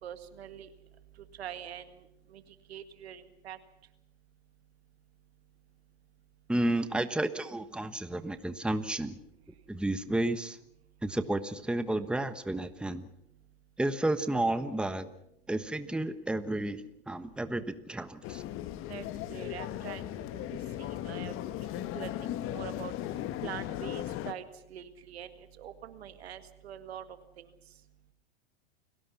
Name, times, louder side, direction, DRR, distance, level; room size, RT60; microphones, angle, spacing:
voice 1, 0.0-0.7 1.4-2.4 2.7-3.6 18.9-21.4 21.7-22.9 23.4-24.4 24.7-27.5, right 9 dB, 80° right, 10 dB, 2.0 m, -44 dB
voice 2, 6.5-9.2 9.7-10.6 11.0-13.1 13.8-15.1 15.5-18.4, right 1 dB, 5° right, 11 dB, 1.2 m, -31 dB
sound 1, 18.2-24.3, left 13 dB, 45° left, 1.3 m, -37 dB
29.5 x 17.5 x 5.9 m, 0.81 s
hypercardioid pair, 100°, 31 cm